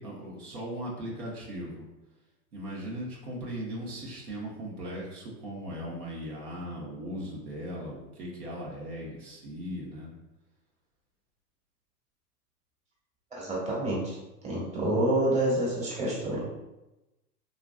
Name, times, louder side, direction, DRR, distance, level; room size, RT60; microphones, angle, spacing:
voice 1, 0.0-1.9 2.5-10.1, equal, 75° right, -3 dB, 1.1 m, -38 dB
voice 2, 13.3-14.2 14.4-16.4, right 1 dB, 15° right, -6 dB, 1.2 m, -28 dB
3.8 x 2.4 x 2.2 m, 0.99 s
hypercardioid pair, 100°, 46 cm